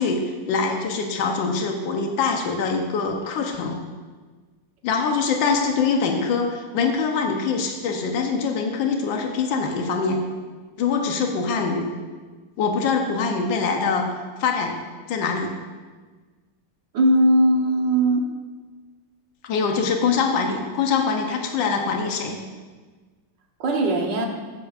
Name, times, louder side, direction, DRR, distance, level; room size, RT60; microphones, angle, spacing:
voice 1, 0.0-3.8 4.8-10.2 10.8-11.9 12.6-14.1 14.4-14.8 15.1-15.6 19.4-22.4, left 5 dB, 85° left, 3 dB, 1.6 m, -23 dB
voice 2, 16.9-18.2 23.6-24.3, right 1 dB, 70° right, 2 dB, 1.7 m, -19 dB
15.0 x 8.7 x 2.4 m, 1.4 s
omnidirectional pair, 2.0 m